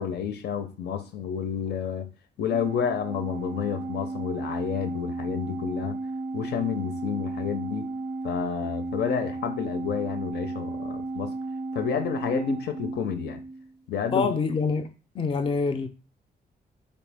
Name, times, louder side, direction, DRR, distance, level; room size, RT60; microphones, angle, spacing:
voice 1, 0.0-2.1 2.4-6.0 6.3-8.0 8.2-11.3 11.7-13.4 13.9-14.3, left 7 dB, 90° left, 0.6 m, -30 dB
Organ, 2.5-13.7, right 3 dB, 80° right, 0.4 m, -34 dB
voice 2, 14.1-15.9, left 4 dB, 35° left, 0.4 m, -26 dB
4.2 x 3.1 x 3.4 m
wide cardioid pair, 145°, 17 cm